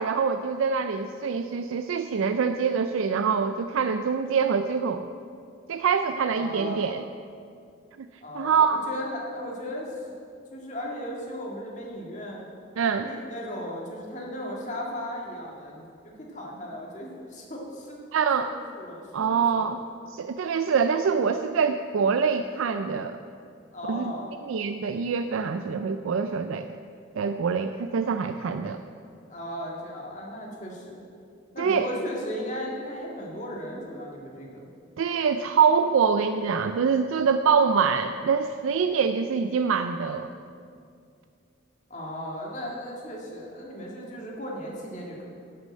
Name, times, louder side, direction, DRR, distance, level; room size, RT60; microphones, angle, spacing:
voice 1, 0.0-5.1 5.7-7.0 8.0-8.1 8.4-8.8 12.8-13.1 18.1-18.5 19.1-19.8 20.1-23.2 23.9-24.1 24.4-26.7 27.2-28.8 31.6-31.9 35.0-40.3, right 6 dB, 85° right, 8 dB, 0.4 m, -25 dB
voice 2, 6.3-6.9 8.2-10.1 10.5-12.4 13.0-18.0 18.4-19.7 23.7-24.3 29.3-31.0 31.5-34.7 41.9-45.2, equal, 35° left, -2 dB, 1.9 m, -36 dB
10.5 x 6.7 x 7.5 m, 2.4 s
head